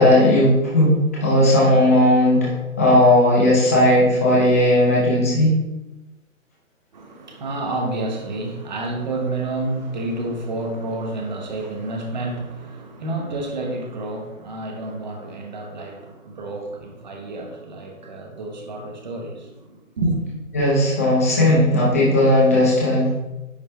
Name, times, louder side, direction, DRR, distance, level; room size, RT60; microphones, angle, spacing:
voice 1, 0.0-2.5 2.8-5.6 20.5-23.1, left 1 dB, 10° left, -6 dB, 0.7 m, -16 dB
voice 2, 6.9-20.2, right 2 dB, 35° right, 2 dB, 0.9 m, -29 dB
9.9 x 3.3 x 3.3 m, 1.0 s
hypercardioid pair, 170°, 41 cm